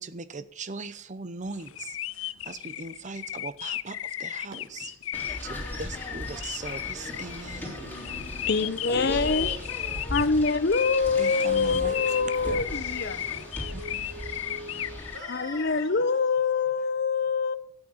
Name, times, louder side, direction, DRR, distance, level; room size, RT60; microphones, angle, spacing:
voice 1, 0.0-4.5 5.4-7.8 11.2-11.9 12.4-12.6 13.7-14.1, right 3 dB, 40° right, 0.7 m, -39 dB
sound 1, 1.6-15.9, left 12 dB, 90° left, 0.5 m, -35 dB
voice 2, 4.5-5.4 7.7-8.6 9.0-10.5 10.8-16.9, right 1 dB, 90° right, 5.3 m, -45 dB
sound 2, 5.1-15.2, left 1 dB, 10° left, 3.3 m, -37 dB
voice 3, 8.5-9.5 10.1-13.2 15.3-17.6, left 4 dB, 55° left, 0.8 m, -25 dB
12.5 x 9.0 x 7.3 m
head